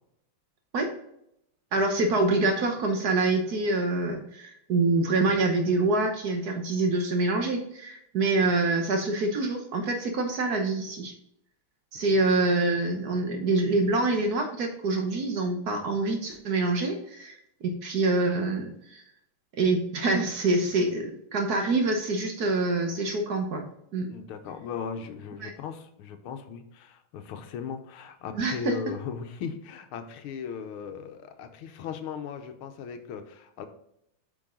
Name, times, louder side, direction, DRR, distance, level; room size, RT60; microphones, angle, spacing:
voice 1, 1.7-11.1 11.9-17.3 17.6-19.0 19.6-23.7 23.9-24.1 25.4-25.5 28.4-28.8, right 2 dB, 55° right, 4 dB, 1.4 m, -26 dB
voice 2, 24.1-33.7, left 7 dB, 80° left, 8 dB, 1.7 m, -38 dB
8.8 x 5.4 x 3.8 m, 0.77 s
omnidirectional pair, 2.3 m